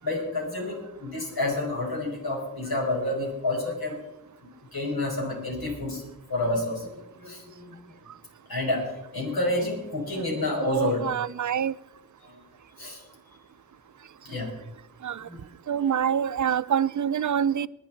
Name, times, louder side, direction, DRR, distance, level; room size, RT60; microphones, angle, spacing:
voice 1, 0.0-4.0 4.7-6.0 6.3-7.8 8.5-8.8 9.1-11.0 12.3-12.4 12.8-13.0 14.2-14.5 15.3-15.4, left 2 dB, 85° left, 5.6 m, -29 dB
voice 2, 10.6-11.7 15.0-15.3 15.7-17.7, right 8 dB, 55° right, 0.5 m, -26 dB
21.0 x 10.0 x 4.6 m
cardioid pair, 55°, 36 cm